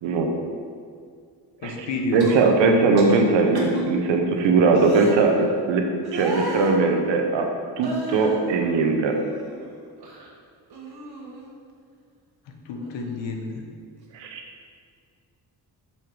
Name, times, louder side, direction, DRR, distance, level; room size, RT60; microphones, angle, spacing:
voice 1, 1.6-2.3 12.5-13.7, left 3 dB, 85° left, 3 dB, 1.0 m, -30 dB
voice 2, 2.1-5.8 6.1-7.5 7.8-9.1 14.1-14.4, right 4 dB, 90° right, 3 dB, 0.9 m, -20 dB
sound 1, 2.2-2.5 3.0-3.2 3.5-3.8 4.7-5.2 6.0-6.8 7.8-8.4 8.9-9.7 10.0-10.3 10.7-11.5 12.8-12.9, right 2 dB, 60° right, 1.3 m, -34 dB
5.6 x 4.5 x 4.9 m, 2.1 s
cardioid pair, 70°, 43 cm